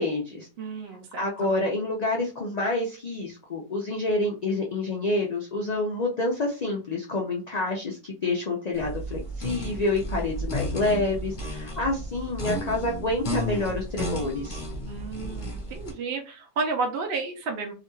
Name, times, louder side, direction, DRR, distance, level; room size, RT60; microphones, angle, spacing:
voice 1, 0.0-0.5 1.2-14.6, left 2 dB, 85° left, -1 dB, 0.3 m, -28 dB
voice 2, 0.6-1.5 14.8-17.7, right 4 dB, 60° right, 2 dB, 0.7 m, -32 dB
sound 1, 8.7-15.9, equal, 40° left, 0.8 m, -33 dB
2.8 x 2.2 x 3.0 m, 0.34 s
omnidirectional pair, 1.4 m